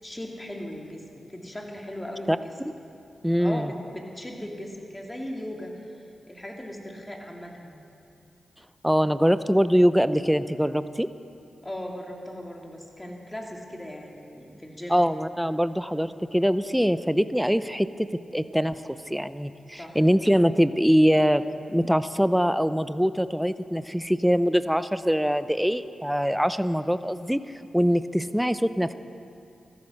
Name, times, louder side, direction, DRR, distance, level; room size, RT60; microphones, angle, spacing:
voice 1, 0.0-2.5 3.4-5.8 6.3-7.8 11.6-15.1 19.8-20.0, left 1 dB, 20° left, 0 dB, 3.0 m, -38 dB
voice 2, 3.2-3.7 8.8-11.1 14.9-21.4 21.7-27.4 27.7-28.9, equal, ahead, 13 dB, 0.6 m, -23 dB
14.5 x 14.5 x 6.5 m, 2.6 s
supercardioid pair, 45°, 0 cm